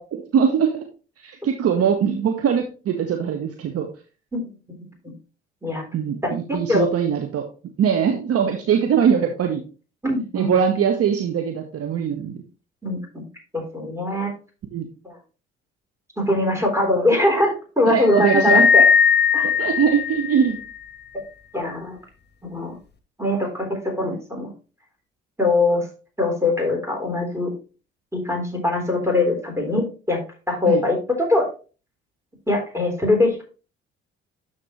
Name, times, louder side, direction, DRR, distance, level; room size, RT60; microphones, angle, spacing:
voice 1, 0.1-0.9 1.2-3.9 5.9-7.5 7.8-9.6 10.3-12.4 14.7-14.9 17.9-18.7 19.4-20.6 30.7-30.8, right 7 dB, 45° right, 4 dB, 1.1 m, -21 dB
voice 2, 6.2-6.9 10.0-10.5 12.8-13.3 13.5-14.3 15.0-15.1 16.2-18.8 19.3-19.5 21.5-22.0 22.5-22.7 23.2-24.5 25.4-25.8 26.2-27.5 28.1-30.2 30.5-31.0 31.3-31.5 32.5-33.4, left 2 dB, 10° right, 2 dB, 3.8 m, -22 dB
sound 1, 18.1-20.8, left 6 dB, 30° left, 1.2 m, -18 dB
12.5 x 4.3 x 3.1 m, 0.34 s
figure-of-eight pair, 45°, 33 cm